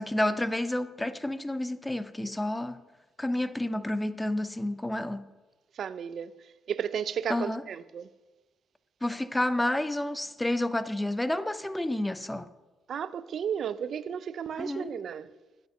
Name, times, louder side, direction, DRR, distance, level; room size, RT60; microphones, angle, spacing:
voice 1, 0.0-2.8 3.2-5.3 7.3-7.6 9.0-12.5 14.6-14.9, left 1 dB, 10° left, 0.5 m, -30 dB
voice 2, 5.8-6.3 6.7-8.1 12.9-15.3, right 8 dB, 60° right, 0.4 m, -33 dB
7.8 x 5.4 x 5.5 m
cardioid pair, 90°, 0 cm